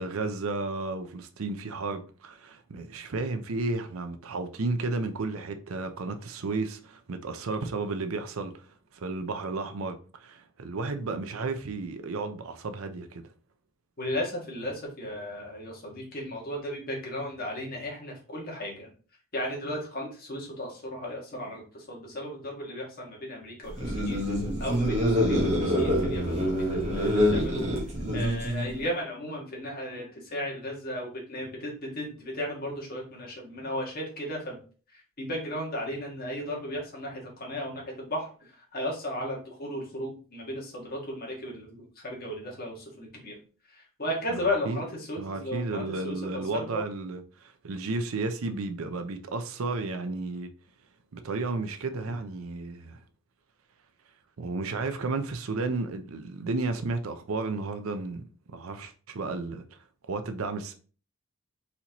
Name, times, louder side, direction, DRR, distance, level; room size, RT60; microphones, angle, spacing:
voice 1, 0.0-8.7 8.9-13.3 44.3-44.8 45.2-50.5 51.1-53.0 54.4-59.6 60.1-60.7, right 3 dB, 70° right, 0.6 m, -33 dB
voice 2, 14.0-18.9 19.3-24.2 24.6-27.7 28.1-34.6 34.9-38.3 38.7-43.4 43.7-46.2 46.5-46.8, left 1 dB, 40° left, 1.7 m, -35 dB
sound 1, 23.7-28.8, equal, 30° right, 1.4 m, -26 dB
4.3 x 4.1 x 2.9 m
head